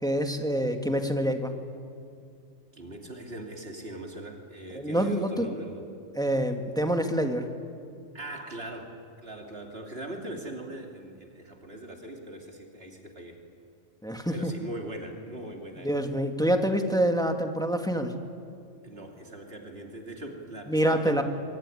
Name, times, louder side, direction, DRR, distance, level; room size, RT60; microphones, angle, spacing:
voice 1, 0.0-1.5 4.7-5.5 6.2-7.5 14.0-14.5 15.8-18.1 20.7-21.2, equal, 5° left, 5 dB, 1.8 m, -26 dB
voice 2, 2.7-5.8 8.1-13.4 14.3-16.0 18.8-21.2, right 1 dB, 45° right, 2 dB, 2.9 m, -40 dB
25.0 x 23.5 x 9.9 m, 2.4 s
omnidirectional pair, 1.4 m